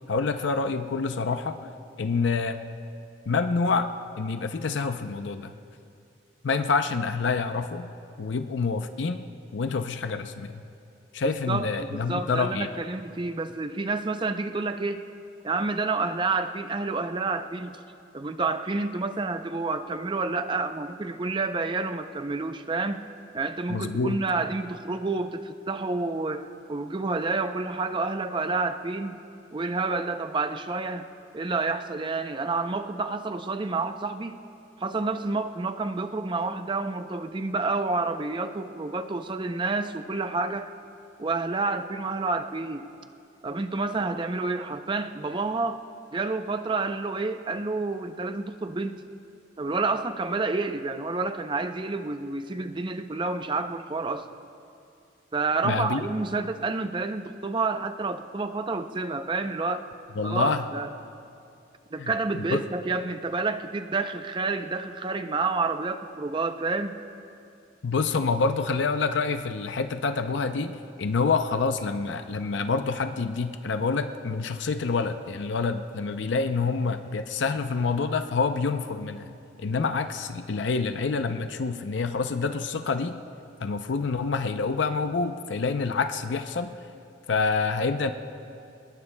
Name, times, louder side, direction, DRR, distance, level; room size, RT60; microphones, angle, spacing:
voice 1, 0.1-1.6 2.0-2.6 3.3-3.9 4.2-5.5 6.4-7.9 8.2-9.2 9.5-10.6 11.1-12.7 23.7-24.2 55.6-56.1 60.2-60.7 62.0-62.6 67.8-83.2 83.6-86.7 87.3-88.1, left 4 dB, 70° left, 8 dB, 0.5 m, -27 dB
voice 2, 11.2-15.1 15.4-17.8 18.1-23.0 23.3-29.2 29.5-31.1 31.3-34.4 34.8-40.7 41.2-42.9 43.4-45.8 46.1-49.0 49.6-54.3 55.3-59.9 60.2-60.9 61.9-67.0, right 3 dB, 25° right, 9 dB, 0.5 m, -29 dB
22.5 x 20.5 x 2.2 m, 2.6 s
head